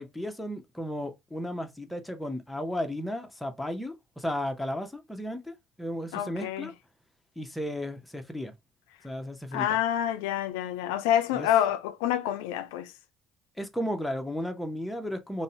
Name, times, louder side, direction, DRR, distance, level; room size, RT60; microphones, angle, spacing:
voice 1, 0.0-6.7 7.4-8.5 9.0-9.7 11.3-11.5 13.6-15.4, equal, 5° left, 0.6 m, -34 dB
voice 2, 6.1-6.7 9.5-12.9, left 10 dB, 85° left, 0.3 m, -27 dB
2.6 x 2.0 x 2.6 m
supercardioid pair, 80°, 0 cm